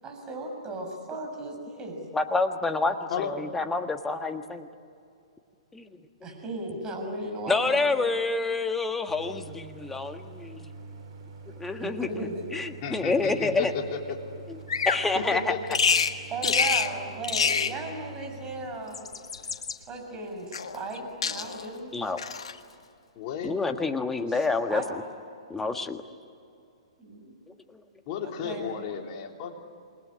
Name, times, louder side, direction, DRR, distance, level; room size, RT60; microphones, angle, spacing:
voice 1, 0.0-2.1 6.2-8.1 11.8-12.5 16.3-19.1 19.4-19.5 19.9-22.1 24.3-24.9 27.0-27.3 28.2-28.8, right 2 dB, 20° right, 2 dB, 7.0 m, -36 dB
voice 2, 2.1-4.7 5.7-5.9 7.5-10.7 11.6-12.3 12.5-13.7 14.8-15.5 21.9-22.2 23.4-24.8 25.5-26.0 27.5-27.6, left 3 dB, 10° left, 7 dB, 1.5 m, -28 dB
Idling, 9.1-18.7, right 3 dB, 55° right, 6.1 m, -45 dB
voice 3, 12.8-14.2 15.2-15.8 16.4-16.5 23.2-23.5 28.1-29.5, left 7 dB, 40° left, 2 dB, 3.5 m, -33 dB
Bird vocalization bird call bird song, 14.7-15.0 15.7-16.1 16.4-16.9 17.2-17.8 18.8-19.8 20.5-21.0 21.2-21.7 22.2-22.6, left 6 dB, 70° left, 1.6 m, -26 dB
28.0 x 21.0 x 10.0 m, 2.5 s
figure-of-eight pair, 120°, 3 cm